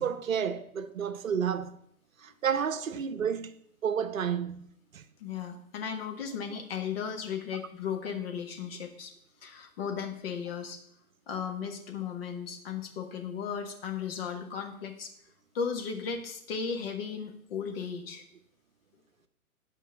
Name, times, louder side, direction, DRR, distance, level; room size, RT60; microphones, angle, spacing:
voice 1, 0.0-1.8 2.2-5.0, right 7 dB, 65° right, 0.8 m, -31 dB
voice 2, 5.2-9.1 9.4-10.8 11.3-15.1 15.5-18.2, left 6 dB, 40° left, 1.6 m, -36 dB
9.5 x 5.4 x 6.8 m
figure-of-eight pair, 120°, 44 cm